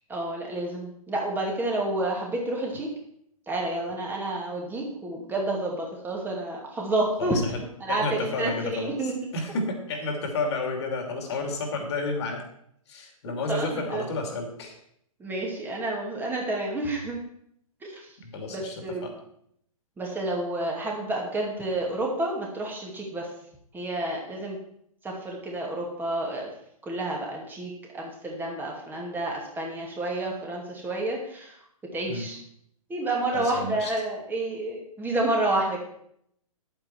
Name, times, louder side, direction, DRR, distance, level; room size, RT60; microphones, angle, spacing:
voice 1, 0.1-2.9 3.5-7.4 7.8-9.3 13.2-14.1 15.2-17.2 17.8-18.2 18.5-19.1 20.0-23.3 23.7-24.6 25.0-26.5 26.8-31.7 31.9-32.4 32.9-35.8, right 2 dB, 10° right, -1 dB, 2.5 m, -30 dB
voice 2, 7.9-8.9 9.3-12.4 12.9-14.7 18.2-18.7 19.0-19.1 32.1-32.3 33.3-33.9, left 3 dB, 50° left, 3 dB, 2.7 m, -31 dB
10.5 x 8.9 x 4.6 m, 0.70 s
figure-of-eight pair, 120°, 19 cm